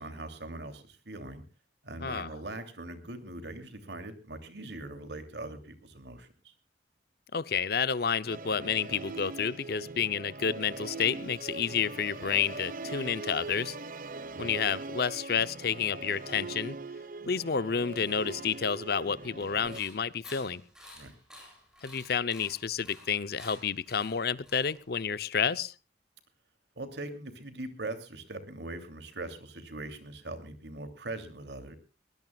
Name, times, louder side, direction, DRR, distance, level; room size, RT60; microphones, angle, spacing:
voice 1, 0.0-1.4 1.8-6.5 14.2-14.5 20.9-21.1 26.8-31.8, right 2 dB, 75° right, 8 dB, 3.0 m, -41 dB
voice 2, 7.3-13.8 14.4-16.8 17.3-20.6 21.8-25.7, left 6 dB, 60° left, 16 dB, 0.7 m, -30 dB
Musical instrument, 8.3-19.8, right 3 dB, 50° right, 1.0 m, -41 dB
sound 1, 19.4-25.1, equal, 5° right, 7.9 m, -52 dB
21.5 x 19.5 x 2.4 m, 0.33 s
head